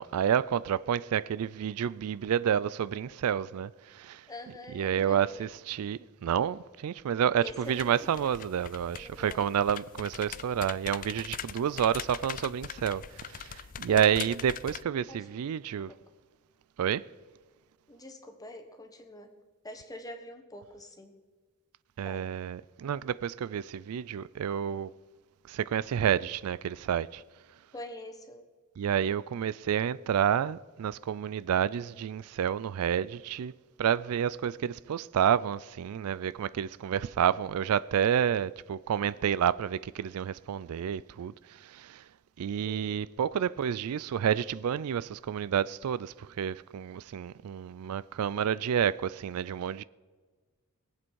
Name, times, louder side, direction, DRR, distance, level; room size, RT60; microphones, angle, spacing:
voice 1, 0.0-4.3 4.7-15.9 16.8-17.1 22.0-24.9 25.5-27.2 28.8-33.5 33.8-42.1 42.4-49.8, right 8 dB, 70° right, 0.4 m, -29 dB
voice 2, 4.3-5.5 7.4-8.1 9.0-9.5 11.7-11.9 13.9-14.3 15.1-15.3 15.7-16.0 17.9-19.3 19.6-21.1 22.0-22.3 27.7-28.5 42.6-43.0, left 1 dB, 15° left, 1.3 m, -45 dB
sound 1, 7.6-14.8, left 9 dB, 40° left, 0.4 m, -42 dB
21.5 x 7.7 x 4.7 m
head